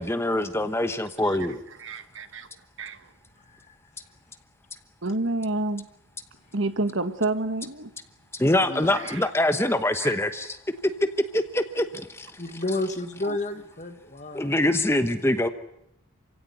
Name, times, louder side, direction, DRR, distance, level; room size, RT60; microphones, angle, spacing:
voice 1, 0.0-1.6 8.4-10.6 11.3-11.9 12.1-12.3 14.3-15.5, left 1 dB, 10° left, 1.0 m, -24 dB
voice 2, 1.8-2.5 2.8-3.0 5.0-5.8 6.5-7.9 8.9-9.2 10.0-10.1 13.2-13.4, right 2 dB, 65° right, 1.5 m, -29 dB
voice 3, 8.7-9.2 12.4-14.6, left 2 dB, 35° left, 1.8 m, -31 dB
28.0 x 16.5 x 9.6 m
head